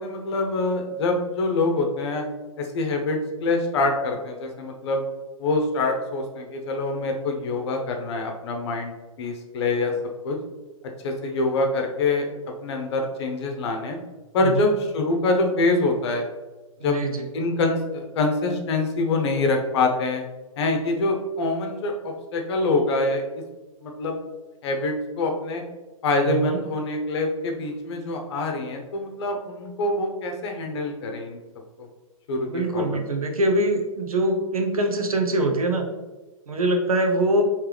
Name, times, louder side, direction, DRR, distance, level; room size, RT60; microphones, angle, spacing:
voice 1, 0.0-2.2 2.6-5.0 5.4-9.9 10.2-10.4 11.0-12.3 12.6-14.0 14.3-16.3 16.8-17.0 17.3-20.2 20.6-23.2 23.8-24.1 24.6-25.6 26.0-31.4 31.8-31.9 32.3-32.8, left 2 dB, 50° left, 3 dB, 0.8 m, -25 dB
voice 2, 14.4-14.7 16.8-17.3 26.2-26.7 32.5-35.9 36.5-37.4, right 1 dB, 75° right, 3 dB, 0.8 m, -23 dB
4.6 x 3.2 x 3.4 m, 1.2 s
figure-of-eight pair, 115°, 18 cm